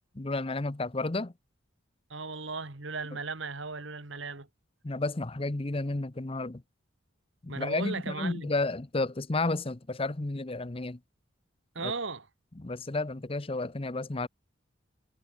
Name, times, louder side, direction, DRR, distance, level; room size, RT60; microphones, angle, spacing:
voice 1, 0.1-1.3 4.8-6.6 7.4-11.0 11.8-11.9 12.6-14.3, left 2 dB, 25° left, 0.8 m, -32 dB
voice 2, 2.1-4.5 7.5-8.5 11.8-12.3, right 4 dB, 65° right, 2.1 m, -36 dB
head